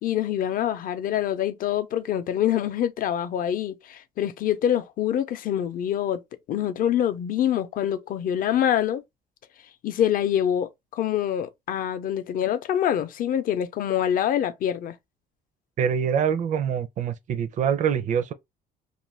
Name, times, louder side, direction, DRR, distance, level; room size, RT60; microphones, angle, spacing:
voice 1, 0.0-6.2 6.5-9.0 9.8-14.9, left 10 dB, 55° left, 0.5 m, -25 dB
voice 2, 15.8-18.3, right 8 dB, 50° right, 0.5 m, -25 dB
2.5 x 2.2 x 3.1 m
cardioid pair, 110°, 17 cm